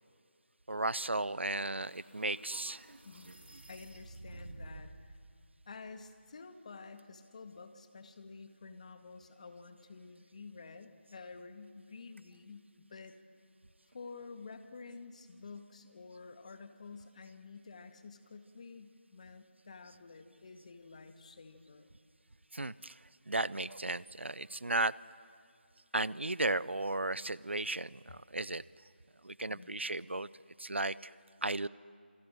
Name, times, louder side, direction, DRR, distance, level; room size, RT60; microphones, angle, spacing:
voice 1, 0.7-2.9 22.5-25.0 25.9-28.6 29.2-30.3 30.6-31.1 31.4-31.7, right 2 dB, 85° right, 21 dB, 0.7 m, -35 dB
sound 1, 1.0-5.1, right 2 dB, 65° right, 3.4 m, -51 dB
voice 2, 3.0-3.4 3.7-5.2 5.7-13.2 13.9-21.9 29.5-29.7, left 4 dB, 35° left, 8 dB, 1.9 m, -50 dB
28.0 x 24.5 x 7.7 m, 2.3 s
figure-of-eight pair, 165°, 6 cm